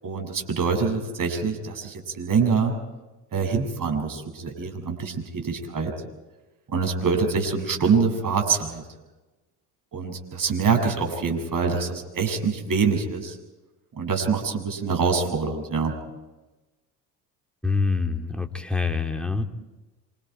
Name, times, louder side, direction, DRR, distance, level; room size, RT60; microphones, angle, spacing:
voice 1, 0.0-2.7 3.3-5.9 6.7-8.8 9.9-13.4 14.0-15.9, right 5 dB, 40° right, 4 dB, 7.3 m, -25 dB
voice 2, 17.6-19.4, left 4 dB, ahead, 3 dB, 3.1 m, -25 dB
27.0 x 27.0 x 4.7 m, 1.1 s
supercardioid pair, 70°, 47 cm